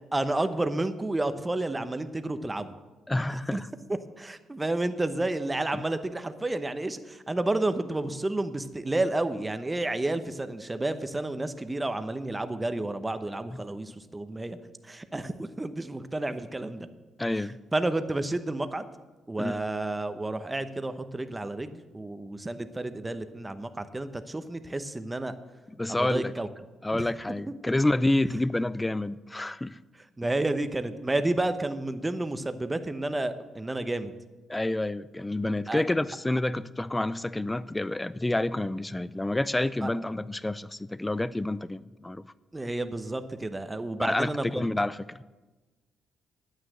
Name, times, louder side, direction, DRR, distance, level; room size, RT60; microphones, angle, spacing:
voice 1, 0.1-2.7 3.3-3.6 4.2-14.6 14.8-16.9 17.7-18.8 19.3-25.3 25.9-26.5 26.9-27.0 30.2-34.1 35.7-35.8 39.8-39.9 42.5-44.6, right 2 dB, 15° right, 10 dB, 0.9 m, -30 dB
voice 2, 3.1-3.7 5.7-5.8 13.5-13.6 17.2-17.6 19.4-19.6 25.8-26.3 26.8-29.8 34.5-42.2 44.0-45.2, left 1 dB, 10° left, 17 dB, 0.4 m, -28 dB
9.3 x 9.0 x 7.8 m, 1.2 s
cardioid pair, 90°, 0 cm